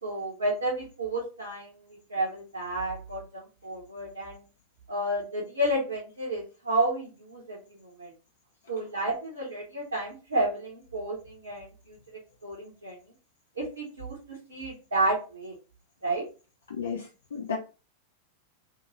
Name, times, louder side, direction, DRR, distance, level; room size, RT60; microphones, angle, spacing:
voice 1, 0.0-4.4 4.9-7.6 8.0-8.1 8.7-12.0 12.4-13.0 13.6-15.5 16.0-16.2, right 1 dB, 75° right, -5 dB, 0.8 m, -31 dB
voice 2, 16.7-17.6, left 5 dB, 70° left, 0 dB, 0.4 m, -33 dB
2.7 x 2.5 x 2.9 m, 0.33 s
figure-of-eight pair, 90°, 0 cm